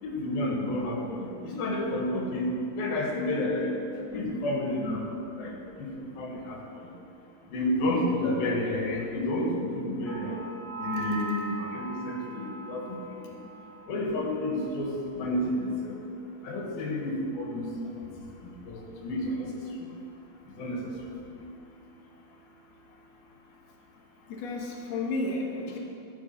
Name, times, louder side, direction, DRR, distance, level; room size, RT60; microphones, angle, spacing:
voice 1, 0.0-2.5 2.8-3.7 4.1-5.1 5.4-5.5 5.8-5.9 6.2-6.9 7.5-10.4 10.8-13.3 13.9-16.0 16.4-17.7 18.4-19.5 19.7-19.9 20.6-20.9, left 1 dB, 85° left, -1 dB, 3.6 m, -30 dB
sound 1, 10.1-14.1 14.4-14.7, right 3 dB, 30° left, 0.6 m, -40 dB
voice 2, 24.3-25.8, left 2 dB, 60° left, -1 dB, 2.1 m, -32 dB
14.5 x 6.8 x 6.9 m, 2.8 s
omnidirectional pair, 4.1 m